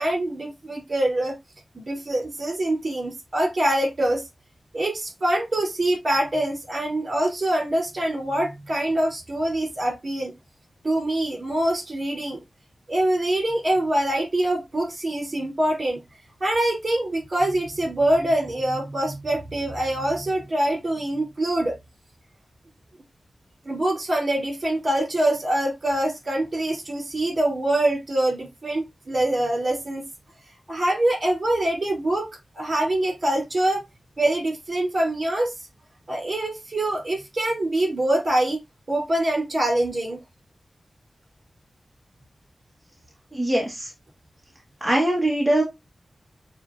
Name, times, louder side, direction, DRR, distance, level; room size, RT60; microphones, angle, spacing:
voice 1, 0.0-1.4 1.7-4.2 4.7-10.3 10.8-12.4 12.9-16.0 16.4-21.7 23.6-30.0 30.7-32.3 32.5-33.8 34.2-35.5 36.1-38.6 38.9-40.2, right 1 dB, 45° right, 2.7 m, -24 dB
voice 2, 43.3-43.9 44.8-45.6, right 1 dB, 5° right, 1.2 m, -22 dB
6.9 x 2.7 x 2.4 m
wide cardioid pair, 90°, 0 cm